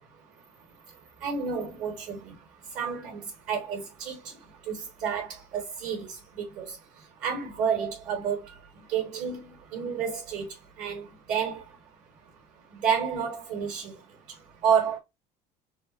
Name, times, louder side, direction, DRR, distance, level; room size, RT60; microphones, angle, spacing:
voice 1, 1.2-2.3 2.7-3.2 3.5-4.2 4.7-6.1 6.6-6.7 7.2-8.4 8.9-10.5 10.8-11.6 12.7-13.9 14.6-15.0, right 7 dB, 60° right, 1.6 m, -29 dB
4.0 x 2.6 x 4.1 m
cardioid pair, 155°, 15 cm